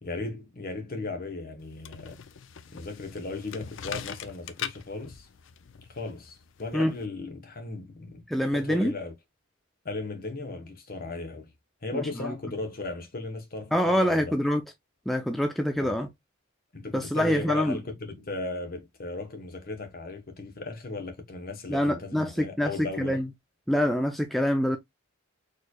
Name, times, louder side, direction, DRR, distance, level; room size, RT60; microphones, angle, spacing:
voice 1, 0.0-2.2 2.7-5.3 5.9-8.2 8.5-9.1 9.8-11.5 11.8-14.4 15.8-15.9 16.7-23.2, left 3 dB, 45° left, 1.0 m, -36 dB
sound 1, 1.6-7.1, left 8 dB, 65° left, 0.4 m, -41 dB
voice 2, 8.3-8.9 11.9-12.3 13.7-14.6 15.1-16.1 16.9-17.8 21.7-23.3 23.7-24.8, equal, ahead, 0.4 m, -25 dB
4.4 x 3.2 x 2.2 m
head